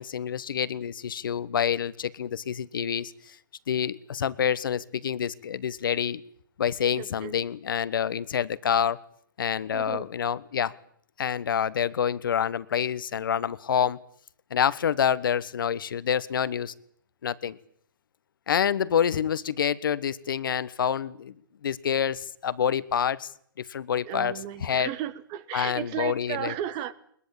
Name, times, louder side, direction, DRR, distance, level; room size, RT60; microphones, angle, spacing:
voice 1, 0.0-3.4 3.7-6.2 6.6-9.0 9.4-10.7 11.2-14.0 14.5-16.7 17.2-17.6 18.5-21.3 21.6-23.3 23.6-24.3 24.6-24.9 25.5-26.5, left 8 dB, 70° left, 17 dB, 1.3 m, -27 dB
voice 2, 6.9-7.3 9.7-10.1 24.0-26.9, right 11 dB, 35° right, 16 dB, 1.4 m, -34 dB
21.5 x 21.0 x 8.8 m, 0.64 s
hypercardioid pair, 130°, 12 cm